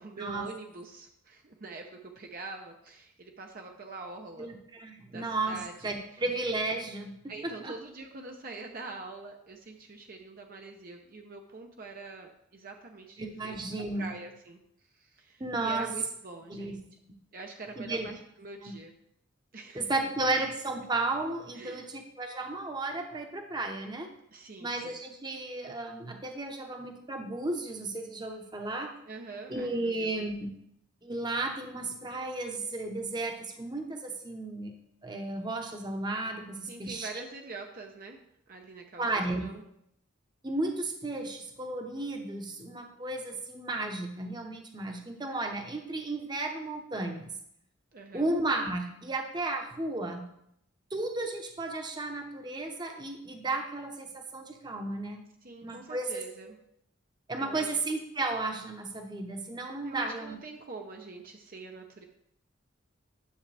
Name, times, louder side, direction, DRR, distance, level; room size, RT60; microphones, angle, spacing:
voice 1, 0.0-4.5 5.1-6.2 7.3-13.5 14.0-14.6 14.9-16.8 17.3-18.9 19.5-19.9 21.5-21.9 24.3-25.0 29.1-30.2 36.7-38.2 38.5-39.6 47.9-48.3 55.4-56.6 57.4-57.8 59.8-62.0, right 3 dB, 45° right, 2 dB, 0.7 m, -44 dB
voice 2, 4.4-7.2 7.4-7.7 13.2-14.1 15.4-15.9 16.5-16.7 17.8-18.1 18.6-18.7 19.7-24.1 24.6-28.9 29.5-30.5 31.0-34.7 35.0-37.2 39.0-39.4 40.4-47.3 48.1-50.3 50.9-55.3 55.6-56.2 57.3-60.4, right 2 dB, 20° right, 4 dB, 0.9 m, -34 dB
10.0 x 7.1 x 3.4 m, 0.75 s
head